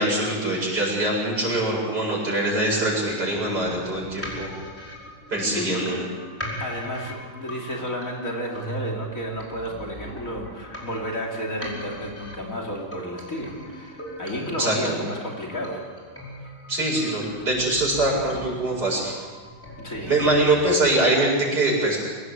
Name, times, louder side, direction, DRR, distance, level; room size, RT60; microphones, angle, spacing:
voice 1, 0.0-4.5 5.3-6.0 14.6-14.9 16.7-19.1 20.1-22.0, right 2 dB, 55° right, -3 dB, 8.6 m, -23 dB
sound 1, 3.1-21.1, equal, 5° left, 5.0 m, -39 dB
voice 2, 5.5-6.1 6.6-15.8 19.8-20.1, equal, 40° left, 1 dB, 3.4 m, -32 dB
24.5 x 19.0 x 8.3 m, 1.5 s
omnidirectional pair, 2.1 m